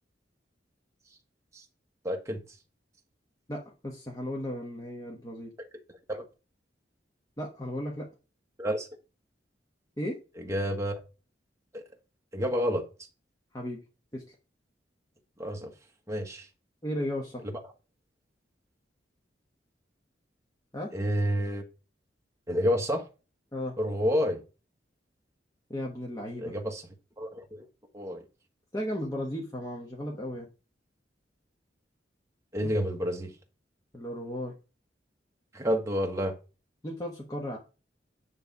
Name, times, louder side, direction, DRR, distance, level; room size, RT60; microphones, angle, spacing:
voice 1, 2.0-2.4 6.1-6.2 8.6-8.9 10.4-11.0 11.7-11.8 12.3-12.8 15.4-15.7 16.1-16.5 20.9-21.6 22.5-23.0 23.8-24.4 26.4-26.9 27.2-27.7 27.9-28.2 32.5-33.3 35.5-36.3, equal, 15° right, 1.2 m, -29 dB
voice 2, 3.5-5.5 7.4-8.1 10.0-10.2 13.5-13.8 14.1-14.3 16.8-17.4 20.7-20.9 23.5-23.7 25.7-26.5 28.7-30.5 32.6-32.7 33.9-34.5 36.8-37.6, left 1 dB, 20° left, 1.1 m, -35 dB
9.6 x 3.3 x 5.2 m
head